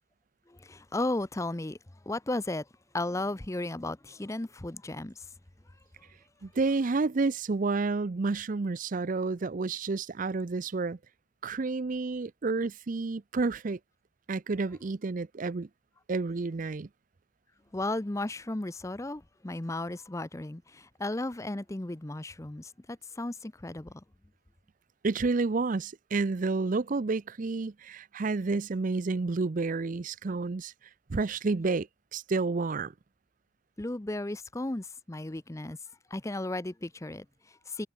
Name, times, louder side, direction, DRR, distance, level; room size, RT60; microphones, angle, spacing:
voice 1, 0.5-1.8 2.0-2.7 2.9-5.3 17.7-24.0 33.8-35.8 36.1-37.9, left 2 dB, 15° left, 0.6 m, -35 dB
voice 2, 6.4-11.0 11.4-13.8 14.3-15.7 16.1-16.9 25.0-30.7 31.1-32.9, right 3 dB, 40° right, 0.5 m, -30 dB
head